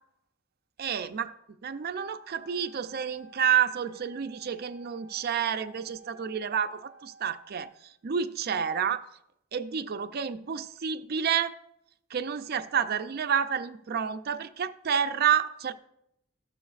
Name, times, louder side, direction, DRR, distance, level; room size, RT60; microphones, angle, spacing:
voice 1, 0.8-1.3 1.6-9.0 9.5-11.6 12.1-15.7, right 8 dB, 50° right, 0.4 m, -29 dB
Wind instrument woodwind instrument, 2.2-8.1, right 1 dB, 90° left, 1.2 m, -55 dB
13.5 x 7.0 x 2.4 m
head